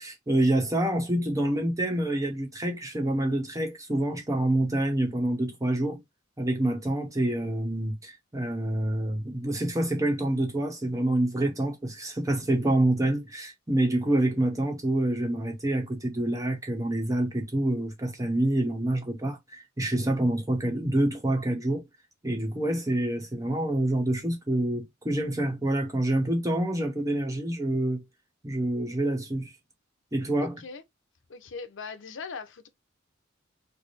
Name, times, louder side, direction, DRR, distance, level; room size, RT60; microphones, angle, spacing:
voice 1, 0.0-6.0 6.4-21.9 22.2-28.1 28.4-29.5 30.1-30.6, right 1 dB, 15° right, 0.9 m, -27 dB
voice 2, 31.3-32.7, left 5 dB, 65° left, 0.7 m, -39 dB
3.3 x 2.1 x 4.1 m
head